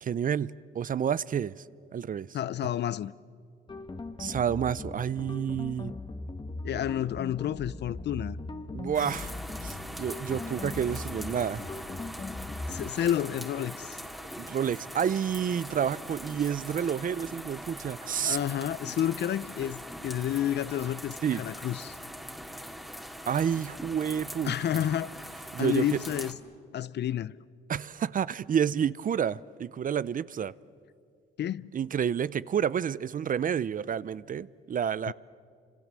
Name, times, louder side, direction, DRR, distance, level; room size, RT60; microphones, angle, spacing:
voice 1, 0.0-1.6 1.9-2.3 4.2-5.9 8.7-9.3 9.6-11.6 14.4-18.4 21.2-21.4 23.3-24.8 25.5-26.0 27.7-30.5 31.7-35.1, right 8 dB, 45° right, 0.6 m, -29 dB
voice 2, 2.3-3.1 6.6-8.4 12.7-14.0 18.2-22.0 24.4-25.3 25.6-26.4 26.7-27.4 31.4-31.7 35.1-35.2, left 11 dB, 60° left, 0.6 m, -30 dB
sound 1, 3.7-12.9, left 2 dB, 25° left, 1.3 m, -39 dB
sound 2, 8.9-26.3, equal, ahead, 2.6 m, -42 dB
29.5 x 26.0 x 7.5 m
cardioid pair, 90°, 20 cm